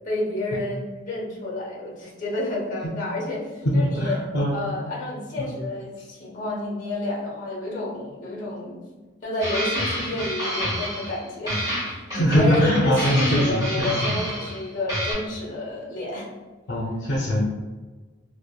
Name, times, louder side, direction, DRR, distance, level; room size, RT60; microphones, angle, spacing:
voice 1, 0.0-4.2 4.5-8.8 9.2-16.3, left 1 dB, 45° left, -4 dB, 0.9 m, -30 dB
voice 2, 3.6-4.8 5.4-5.5 12.1-14.2 16.7-17.5, equal, 70° left, -5 dB, 0.5 m, -22 dB
sound 1, 9.4-11.2 11.5-14.6 14.9-15.1, equal, 20° right, 1.1 m, -28 dB
2.9 x 2.1 x 2.2 m, 1.3 s
head